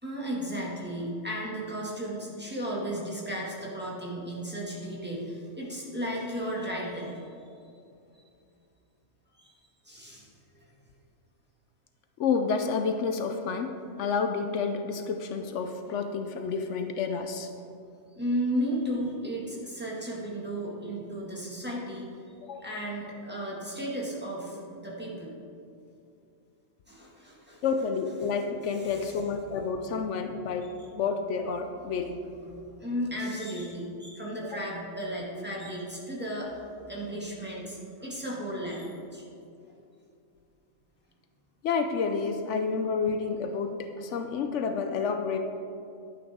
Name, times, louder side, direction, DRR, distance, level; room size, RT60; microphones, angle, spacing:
voice 1, 0.0-7.2 9.3-9.5 9.9-10.3 10.6-10.7 18.2-22.1 22.6-25.3 26.9-27.7 28.8-29.2 30.8-30.9 32.4-36.5 36.8-39.2, equal, 10° right, -6 dB, 1.8 m, -34 dB
voice 2, 12.2-17.5 22.4-22.7 27.6-32.2 34.5-34.6 41.6-45.4, left 5 dB, 75° left, 6 dB, 0.9 m, -30 dB
11.0 x 9.4 x 3.6 m, 2.6 s
omnidirectional pair, 1.3 m